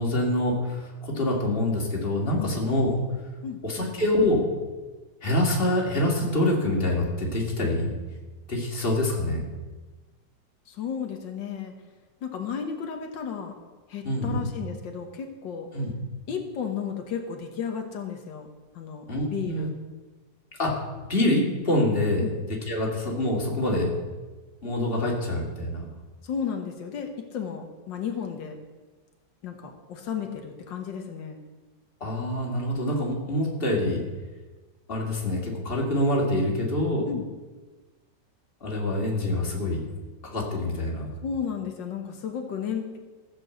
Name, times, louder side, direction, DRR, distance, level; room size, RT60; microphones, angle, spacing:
voice 1, 0.0-3.0 3.6-4.4 5.2-7.9 8.5-9.4 14.0-14.4 15.7-15.9 19.1-19.7 20.6-20.8 21.1-22.3 22.7-23.9 24.6-25.9 32.0-34.0 34.9-37.1 38.6-39.8 40.2-41.1, left 1 dB, 30° left, -2 dB, 2.7 m, -25 dB
voice 2, 3.4-3.9 10.7-11.7 12.2-13.6 13.9-15.7 16.3-18.5 18.7-19.7 22.2-22.3 26.2-28.6 29.4-31.4 37.1-37.2 41.2-43.0, left 7 dB, 85° left, 4 dB, 1.9 m, -33 dB
14.5 x 7.0 x 7.9 m, 1.3 s
omnidirectional pair, 1.9 m